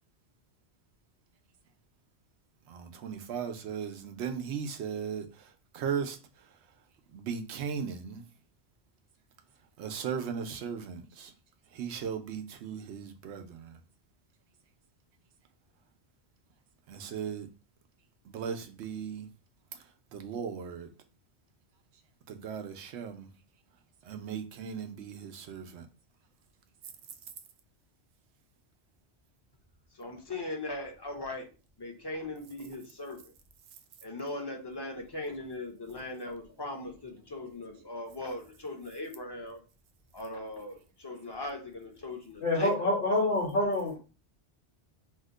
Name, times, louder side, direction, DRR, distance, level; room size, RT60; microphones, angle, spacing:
voice 1, 2.7-6.2 7.1-8.2 9.8-11.3 11.7-13.8 16.9-17.5 18.3-19.3 20.1-20.9 22.3-23.3 24.0-25.9, right 7 dB, 90° right, 0.9 m, -37 dB
voice 2, 30.0-31.5 31.8-33.2 34.0-39.6 40.1-42.9, left 2 dB, 30° left, 0.6 m, -39 dB
voice 3, 42.4-44.0, left 1 dB, 60° left, 1.1 m, -27 dB
2.8 x 2.1 x 3.6 m
omnidirectional pair, 1.1 m